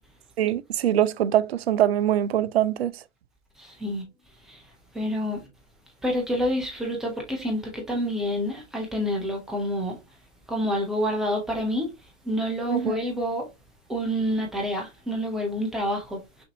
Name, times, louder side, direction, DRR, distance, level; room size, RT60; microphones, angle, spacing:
voice 1, 0.4-2.9 12.7-13.0, right 11 dB, 55° right, 0.5 m, -23 dB
voice 2, 3.6-4.0 4.5-4.6 4.9-5.4 6.0-10.0 10.5-11.9 12.2-13.5 13.9-16.4, equal, ahead, 0.3 m, -28 dB
5.9 x 2.6 x 2.8 m
hypercardioid pair, 125°, 37 cm